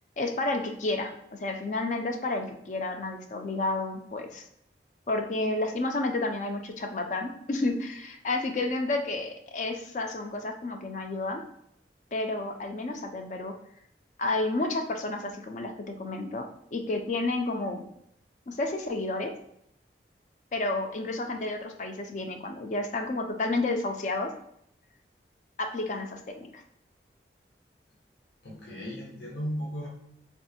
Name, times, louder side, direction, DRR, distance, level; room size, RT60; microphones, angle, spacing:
voice 1, 0.2-4.4 5.1-11.4 12.1-13.5 14.2-17.8 18.5-19.3 20.5-24.3 25.6-26.6, left 2 dB, 45° left, 4 dB, 0.3 m, -31 dB
voice 2, 28.4-29.9, equal, 75° left, -4 dB, 0.8 m, -35 dB
3.4 x 2.4 x 2.7 m, 0.74 s
head